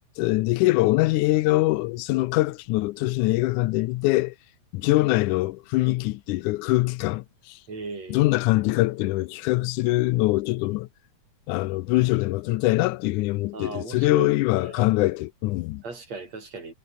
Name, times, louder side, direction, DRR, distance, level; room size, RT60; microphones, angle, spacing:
voice 1, 0.2-4.4 4.7-7.6 8.1-10.9 11.5-15.8, left 19 dB, 90° left, 2.1 m, -23 dB
voice 2, 7.7-8.3 13.5-14.8 15.8-16.7, right 3 dB, 60° right, 7.3 m, -37 dB
omnidirectional pair, 3.4 m